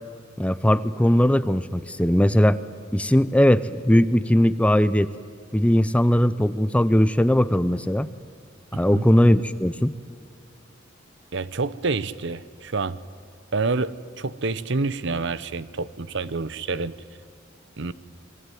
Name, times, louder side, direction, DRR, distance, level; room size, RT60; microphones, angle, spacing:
voice 1, 0.4-2.6 2.9-5.1 5.5-8.1 8.7-9.9, equal, 5° left, 14 dB, 0.6 m, -19 dB
voice 2, 11.3-13.0 13.5-16.9 17.8-17.9, right 3 dB, 65° right, 16 dB, 0.9 m, -27 dB
28.0 x 22.0 x 9.4 m, 2.2 s
head